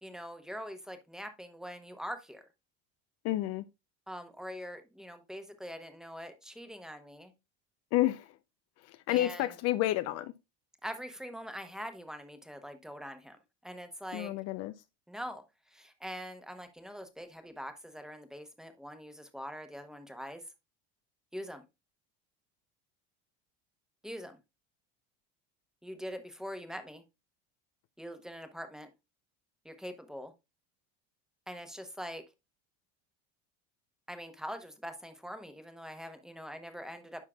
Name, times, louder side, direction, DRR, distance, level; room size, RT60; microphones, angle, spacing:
voice 1, 0.0-2.5 4.1-7.3 9.1-9.6 10.8-14.3 15.1-20.4 21.3-21.6 24.0-24.4 25.8-27.0 28.0-28.9 29.6-30.3 31.5-32.2 34.1-37.3, equal, ahead, 0.9 m, -43 dB
voice 2, 3.2-3.6 7.9-8.3 9.1-10.3 14.1-14.7, left 15 dB, 50° left, 0.4 m, -29 dB
9.9 x 5.6 x 2.2 m
cardioid pair, 140°, 33 cm